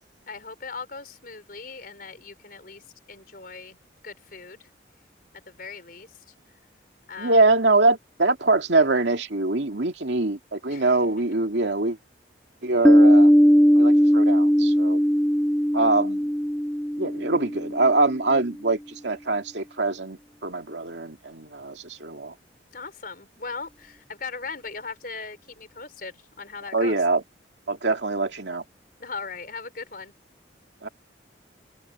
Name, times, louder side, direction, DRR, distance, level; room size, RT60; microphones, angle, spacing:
voice 1, 0.3-2.8 3.1-3.8 4.0-4.7 5.3-6.3 7.1-7.4 10.7-11.1 22.7-27.0 29.0-30.1, left 4 dB, 50° left, 4.6 m, -39 dB
voice 2, 7.2-12.0 12.6-13.3 13.8-15.0 15.7-16.3 17.0-22.3 26.7-27.2 27.7-28.6 30.8-30.9, right 2 dB, 70° right, 2.4 m, -23 dB
Piano, 12.8-18.2, equal, 5° left, 1.8 m, -18 dB
head